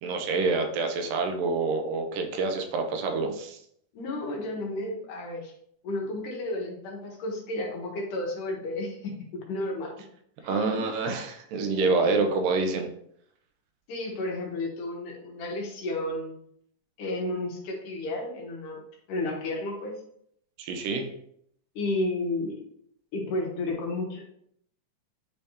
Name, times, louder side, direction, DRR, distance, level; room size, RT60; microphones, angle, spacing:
voice 1, 0.0-3.6 10.4-12.9 20.6-21.1, right 4 dB, 90° right, 5 dB, 2.5 m, -27 dB
voice 2, 3.9-5.5 5.8-9.9 10.4-10.8 11.7-12.3 13.9-16.4 17.0-18.8 19.1-20.0 21.8-22.5 23.1-24.2, left 2 dB, 75° left, -1 dB, 2.9 m, -32 dB
10.0 x 3.4 x 2.9 m, 0.70 s
omnidirectional pair, 3.8 m